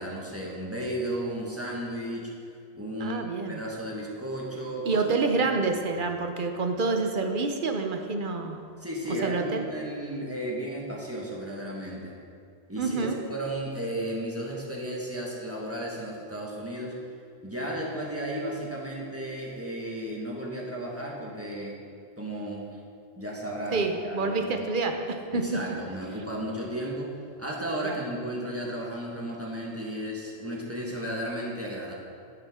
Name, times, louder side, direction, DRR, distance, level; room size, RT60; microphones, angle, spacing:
voice 1, 0.0-2.3 2.7-5.0 5.4-6.0 8.8-12.1 12.7-16.9 17.4-21.8 22.2-22.7 23.1-24.7 25.3-31.9, right 1 dB, 15° right, -4 dB, 1.5 m, -34 dB
voice 2, 3.0-3.6 4.8-8.6 9.2-9.6 12.8-13.2 23.7-25.0 25.3-25.6 27.8-28.0, right 3 dB, 55° right, 5 dB, 0.9 m, -27 dB
10.0 x 9.9 x 3.6 m, 2.3 s
omnidirectional pair, 1.1 m